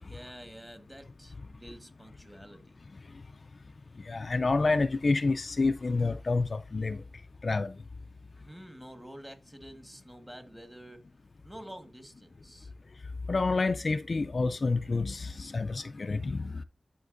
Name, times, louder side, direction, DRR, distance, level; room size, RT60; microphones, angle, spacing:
voice 1, 0.0-2.8 8.4-11.0 11.4-12.7, equal, 10° right, 1.3 m, -48 dB
voice 2, 4.1-7.0 7.4-7.7 13.3-16.6, left 3 dB, 60° left, 0.4 m, -28 dB
11.0 x 4.3 x 2.5 m
cardioid pair, 50°, 0 cm